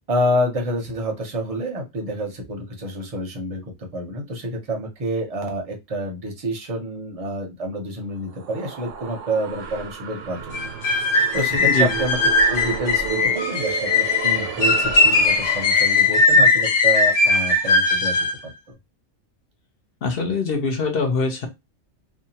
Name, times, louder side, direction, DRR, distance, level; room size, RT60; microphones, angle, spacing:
voice 1, 0.1-12.2 12.5-18.2 18.7-18.8, equal, 35° right, 3 dB, 0.6 m, -28 dB
sound 1, 8.1-16.4, right 9 dB, 85° right, 0.9 m, -33 dB
sound 2, 10.5-18.4, left 3 dB, 75° left, 1.1 m, -19 dB
voice 2, 20.0-21.5, left 4 dB, 60° left, 5 dB, 0.8 m, -23 dB
2.7 x 2.2 x 2.7 m, 0.21 s
omnidirectional pair, 1.2 m